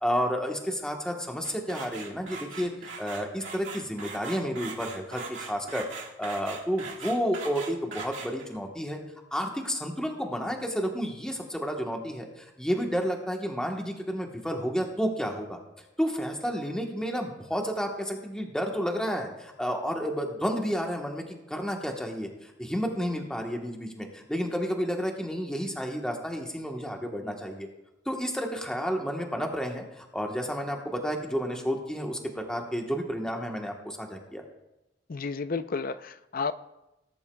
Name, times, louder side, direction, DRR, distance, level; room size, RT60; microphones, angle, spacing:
voice 1, 0.0-5.9 6.2-9.0 9.3-15.6 16.0-27.7 28.0-34.4, equal, 5° left, 1 dB, 1.1 m, -31 dB
sound 1, 1.4-8.6, right 4 dB, 75° right, 2.1 m, -40 dB
voice 2, 35.1-36.5, left 4 dB, 50° left, 12 dB, 0.5 m, -31 dB
19.5 x 10.5 x 2.3 m, 0.93 s
head